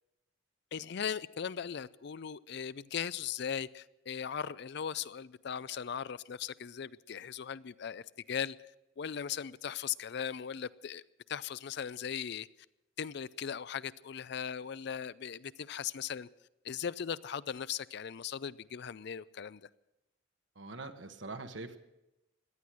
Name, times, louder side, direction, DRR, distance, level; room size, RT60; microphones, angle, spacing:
voice 1, 0.7-8.6 9.0-11.0 11.3-12.5 13.0-16.3 16.6-19.6, left 8 dB, 60° left, 0.4 m, -38 dB
voice 2, 20.5-21.8, right 3 dB, 65° right, 1.3 m, -43 dB
18.0 x 11.5 x 6.2 m
head